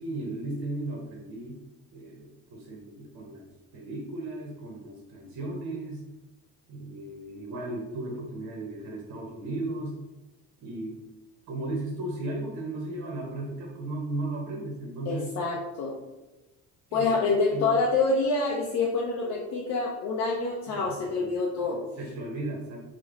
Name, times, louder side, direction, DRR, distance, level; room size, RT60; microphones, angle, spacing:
voice 1, 0.0-1.6 1.9-3.5 3.7-6.0 6.7-10.0 10.6-11.0 11.5-15.3 16.9-17.1 17.5-17.7 20.7-21.3 21.6-22.8, right 2 dB, 50° right, -1 dB, 0.7 m, -35 dB
voice 2, 15.1-15.9 16.9-21.8, left 3 dB, 50° left, -2 dB, 0.5 m, -27 dB
3.0 x 2.1 x 2.3 m, 1.1 s
cardioid pair, 110°, 36 cm